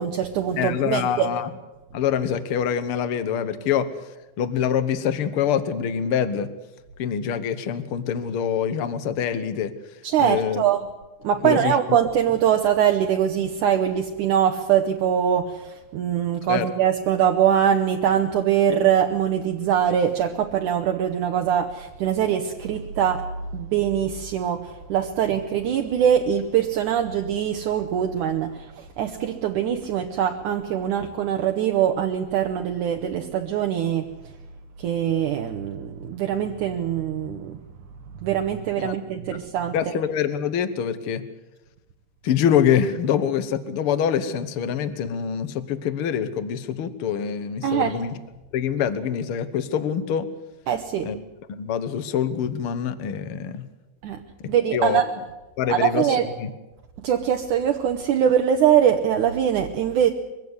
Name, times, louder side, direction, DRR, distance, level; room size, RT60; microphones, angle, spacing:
voice 1, 0.0-1.3 10.0-10.9 11.2-34.1 34.8-37.6 38.2-39.7 47.6-48.0 50.7-51.1 54.0-54.2 54.5-55.1 55.7-56.3 57.0-60.1, right 9 dB, 70° right, 4 dB, 2.3 m, -22 dB
voice 2, 0.6-1.5 1.9-3.9 4.4-6.5 7.0-9.7 10.2-10.6 11.4-11.7 16.5-16.7 38.8-38.9 39.7-41.2 42.2-48.1 48.5-50.3 51.0-51.2 51.5-53.6 54.4-55.0 55.6-56.1 56.4-56.5, left 8 dB, 70° left, 12 dB, 1.3 m, -25 dB
22.5 x 16.0 x 9.7 m, 1.0 s
omnidirectional pair, 4.1 m